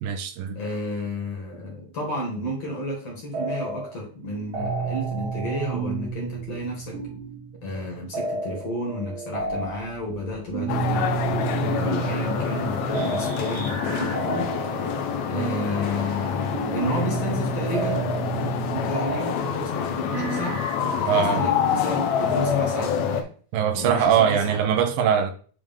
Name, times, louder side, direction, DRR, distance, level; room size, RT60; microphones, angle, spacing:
voice 1, 0.0-0.6 21.1-21.4 23.5-25.3, right 8 dB, 80° right, 2.4 m, -22 dB
voice 2, 0.6-7.0 7.6-14.8 15.3-18.1 18.7-20.7 21.0-23.3 23.7-24.6, left 1 dB, 50° left, 2.5 m, -32 dB
sound 1, 3.3-4.0 4.2-22.5, right 5 dB, 55° right, 3.0 m, -32 dB
sound 2, 10.7-23.2, left 7 dB, 80° left, 1.6 m, -27 dB
8.9 x 3.5 x 3.6 m
omnidirectional pair, 4.2 m